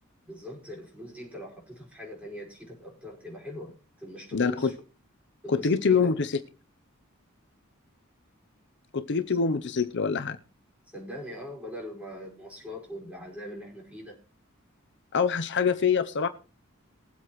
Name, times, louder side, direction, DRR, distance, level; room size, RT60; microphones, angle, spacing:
voice 1, 0.3-4.7 5.4-6.1 9.3-9.4 10.9-14.2, equal, 5° right, 5.2 m, -41 dB
voice 2, 4.3-4.7 5.5-6.4 8.9-10.4 15.1-16.3, left 5 dB, 60° left, 0.7 m, -25 dB
21.0 x 8.0 x 3.1 m
head